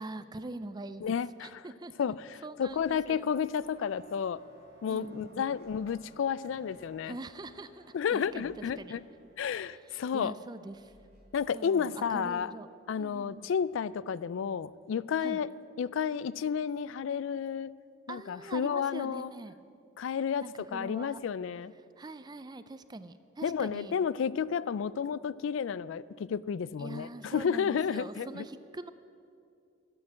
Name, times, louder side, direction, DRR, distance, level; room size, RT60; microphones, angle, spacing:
voice 1, 0.0-2.1 2.4-3.3 4.9-5.4 7.0-7.9 8.1-9.0 9.6-10.9 11.5-12.7 13.0-13.5 15.2-15.4 18.1-19.5 20.4-21.2 22.0-24.0 26.8-28.9, right 2 dB, 20° right, 12 dB, 0.4 m, -43 dB
voice 2, 1.0-1.7 2.0-4.4 4.8-7.1 7.9-9.0 9.4-10.3 11.3-12.5 12.9-15.5 15.8-17.7 18.1-19.3 20.0-21.7 23.4-28.4, left 7 dB, 75° left, 19 dB, 0.3 m, -31 dB
sound 1, 2.6-3.2 5.4-6.0 8.2-8.9 10.6-11.4, left 1 dB, 55° left, 3.7 m, -63 dB
sound 2, 3.5-12.1, equal, 60° right, 2.7 m, -60 dB
13.0 x 9.6 x 7.5 m, 2.4 s
head